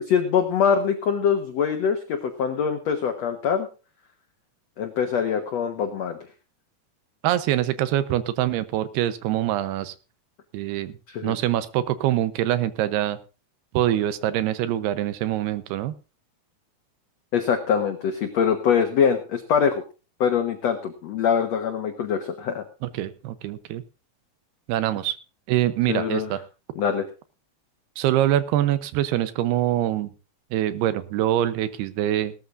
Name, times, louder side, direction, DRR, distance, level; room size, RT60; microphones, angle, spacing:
voice 1, 0.1-3.7 4.8-6.2 11.1-11.3 17.3-19.7 20.2-22.6 25.9-26.3 26.7-27.1, left 7 dB, 70° left, 6 dB, 1.5 m, -23 dB
voice 2, 7.2-9.9 10.5-11.0 11.2-13.2 13.7-15.9 22.8-23.8 24.7-25.2 25.5-26.4 28.0-30.1 30.5-32.3, right 12 dB, 80° right, 13 dB, 2.9 m, -24 dB
19.0 x 13.0 x 2.6 m, 0.33 s
omnidirectional pair, 4.8 m